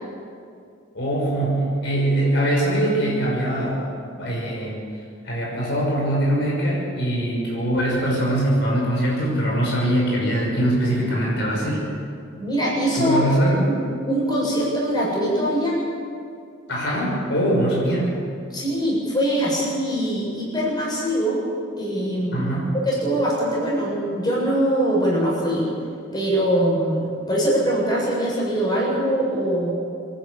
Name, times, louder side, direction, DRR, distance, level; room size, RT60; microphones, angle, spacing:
voice 1, 0.9-4.8 5.2-11.9 12.9-13.7 16.7-18.2 22.3-22.8, right 1 dB, 60° left, -4 dB, 6.1 m, -22 dB
voice 2, 12.4-13.8 14.1-15.9 18.5-21.4 21.8-22.5 22.7-25.7 26.1-29.7, equal, 20° left, -5 dB, 7.4 m, -22 dB
27.0 x 11.5 x 8.6 m, 2.3 s
head